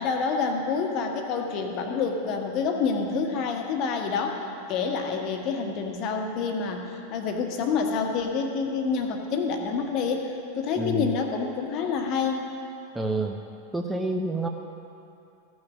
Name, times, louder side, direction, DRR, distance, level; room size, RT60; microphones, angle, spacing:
voice 1, 0.0-4.4 4.7-12.5, left 5 dB, 40° left, 4 dB, 1.2 m, -27 dB
voice 2, 10.8-11.1 12.9-13.4 13.7-14.5, right 2 dB, 5° right, 3 dB, 0.6 m, -28 dB
15.0 x 6.3 x 6.1 m, 2.6 s
figure-of-eight pair, 90°, 0 cm